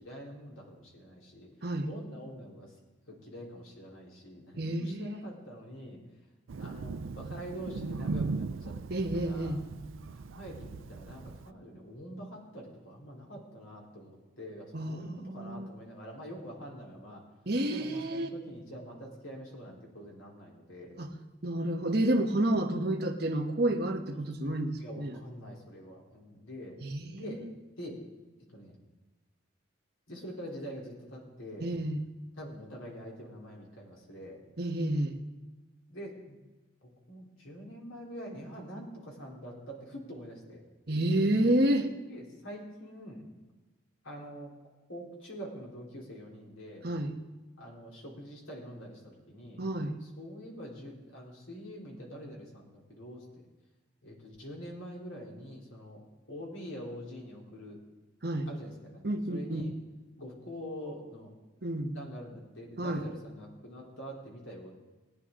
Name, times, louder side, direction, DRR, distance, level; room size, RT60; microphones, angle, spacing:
voice 1, 0.0-1.5 1.9-2.7 3.1-6.0 6.6-9.6 10.1-17.2 17.7-21.0 24.4-26.8 27.1-27.4 27.8-28.0 28.5-28.8 30.1-31.7 32.4-34.4 35.9-36.4 36.8-40.6 41.8-43.2 44.0-44.5 44.9-46.9 47.6-49.6 50.0-53.2 54.0-57.8 58.5-59.7 60.2-61.3 61.9-64.8, equal, 80° left, -2 dB, 3.6 m, -45 dB
voice 2, 4.6-5.2 8.9-9.6 14.7-15.7 17.5-18.3 21.0-21.1 21.4-25.2 26.8-27.5 31.6-32.0 34.6-35.2 40.9-41.9 46.8-47.1 49.6-50.0 58.2-58.5 59.0-59.6 61.6-62.0 62.8-63.1, right 1 dB, 50° right, 3 dB, 1.2 m, -30 dB
Thunder, 6.5-11.5, right 4 dB, 80° right, 0.5 m, -38 dB
19.5 x 9.7 x 3.8 m, 1.2 s
head